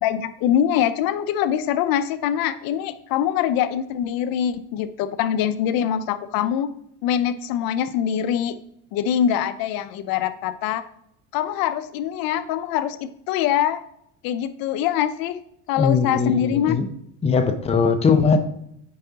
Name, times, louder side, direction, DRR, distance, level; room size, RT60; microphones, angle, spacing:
voice 1, 0.0-6.7 7.0-8.6 8.9-10.8 11.3-13.8 14.2-15.4 15.7-16.8, left 10 dB, 65° left, 12 dB, 0.5 m, -23 dB
voice 2, 15.8-16.9 17.2-18.4, left 5 dB, 15° left, 8 dB, 0.5 m, -20 dB
9.3 x 4.5 x 2.8 m, 0.73 s
cardioid pair, 120°, 39 cm